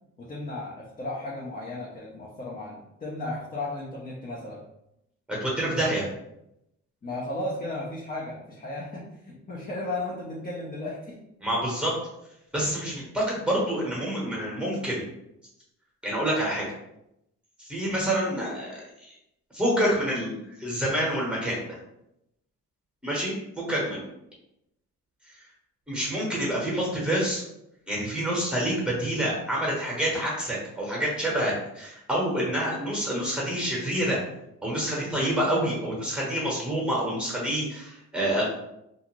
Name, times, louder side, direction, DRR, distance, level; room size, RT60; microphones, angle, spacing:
voice 1, 0.2-4.6 7.0-11.2, left 2 dB, 30° left, -5 dB, 0.7 m, -35 dB
voice 2, 5.3-6.1 11.4-11.9 12.5-15.0 16.0-16.6 17.6-18.7 19.5-21.7 23.0-24.0 25.9-27.4 27.9-34.2 34.6-38.4, right 1 dB, 5° right, -4 dB, 1.0 m, -27 dB
2.5 x 2.4 x 3.0 m, 0.82 s
cardioid pair, 90°, 30 cm